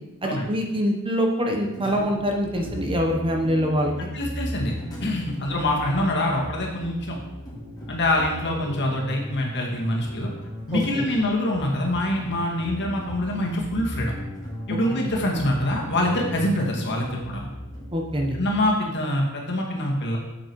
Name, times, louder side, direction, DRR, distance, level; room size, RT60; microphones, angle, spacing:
voice 1, 0.2-3.9 10.7-11.0 15.0-15.1 17.9-18.4, equal, 25° right, 2 dB, 1.1 m, -24 dB
sound 1, 1.7-18.6, equal, 20° left, 2.8 m, -37 dB
voice 2, 4.1-4.7 5.0-7.2 7.9-10.3 10.7-14.1 14.7-17.5 18.4-20.2, left 1 dB, 55° left, -1 dB, 2.1 m, -25 dB
8.8 x 7.2 x 4.7 m, 0.98 s
head